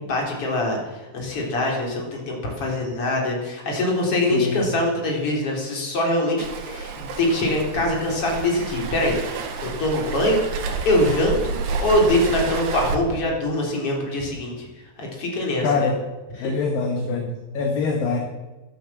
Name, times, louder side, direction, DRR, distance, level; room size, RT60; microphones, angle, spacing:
voice 1, 0.1-10.4 10.8-14.7 15.0-15.9 16.4-16.5, left 1 dB, 30° left, 0 dB, 3.9 m, -23 dB
voice 2, 4.3-4.6 15.6-16.0 16.4-18.2, left 4 dB, 65° left, 3 dB, 2.5 m, -24 dB
Waves surf, 6.4-12.9, right 5 dB, 80° right, 4.3 m, -30 dB
15.5 x 11.5 x 7.3 m, 1.2 s
omnidirectional pair, 5.5 m